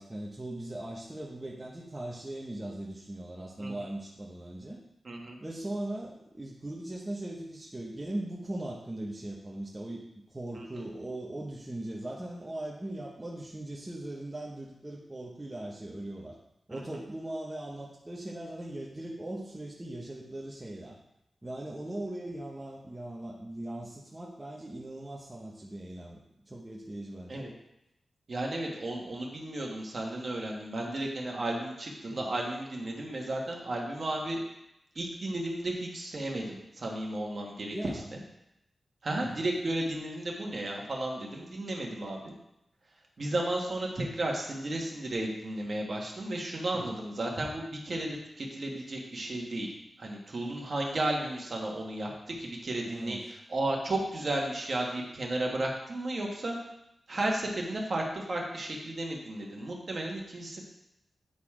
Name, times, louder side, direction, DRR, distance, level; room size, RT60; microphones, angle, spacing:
voice 1, 0.0-4.8 5.4-16.4 16.7-21.0 21.4-26.2 26.5-27.4 32.1-32.4 37.7-38.1 39.2-39.4 46.7-47.0 52.8-53.2, right 1 dB, 15° right, -4 dB, 0.8 m, -39 dB
voice 2, 5.0-5.4 10.6-10.8 16.7-16.8 27.3-27.5 28.3-34.4 34.9-37.7 38.1-38.2 39.0-42.2 43.2-49.7 50.0-56.6 57.1-60.6, right 1 dB, 40° right, -1 dB, 1.4 m, -33 dB
8.8 x 4.1 x 4.8 m, 0.84 s
wide cardioid pair, 165°, 0 cm